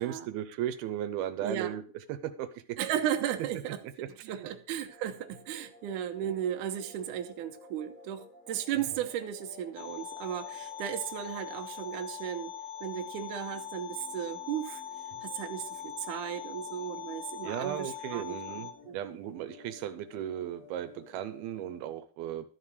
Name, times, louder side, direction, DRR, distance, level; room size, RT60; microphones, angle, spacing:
voice 1, 0.0-1.8 2.1-2.8 4.2-4.5 8.7-8.8 17.4-22.5, right 11 dB, 85° right, 10 dB, 2.7 m, -36 dB
voice 2, 1.4-1.7 2.8-3.8 4.3-12.5 12.8-14.8 15.2-19.0, right 10 dB, 65° right, 5 dB, 2.3 m, -35 dB
sound 1, 4.9-21.9, left 4 dB, 20° left, 4.2 m, -54 dB
sound 2, 9.8-18.7, left 10 dB, 75° left, 2.3 m, -42 dB
13.0 x 5.7 x 6.6 m, 0.41 s
omnidirectional pair, 4.4 m